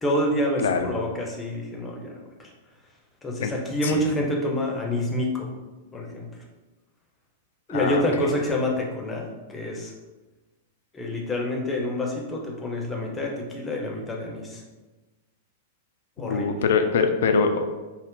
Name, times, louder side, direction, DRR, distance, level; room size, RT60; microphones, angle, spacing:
voice 1, 0.0-2.1 2.4-2.5 3.2-5.5 5.9-6.3 7.7-9.9 10.9-14.6 16.2-16.5, left 1 dB, 15° left, 0 dB, 0.6 m, -27 dB
voice 2, 7.7-8.3 16.2-17.8, left 5 dB, 60° left, 6 dB, 0.3 m, -24 dB
2.5 x 2.1 x 3.6 m, 1.2 s
figure-of-eight pair, 95°, 0 cm